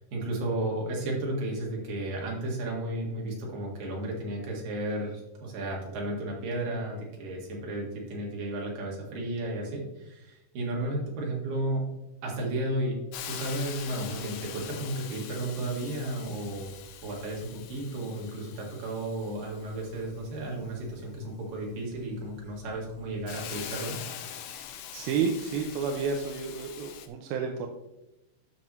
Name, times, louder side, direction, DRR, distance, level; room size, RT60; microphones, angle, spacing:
voice 1, 0.1-11.9 12.2-13.0 13.3-16.7 17.0-24.0, right 1 dB, 60° right, -2 dB, 3.6 m, -33 dB
Hiss, 13.1-27.1, left 9 dB, 75° left, 2.2 m, -44 dB
voice 2, 24.4-24.7 24.9-27.7, right 5 dB, 75° right, 3 dB, 2.3 m, -31 dB
12.0 x 6.0 x 3.1 m, 0.93 s
omnidirectional pair, 4.6 m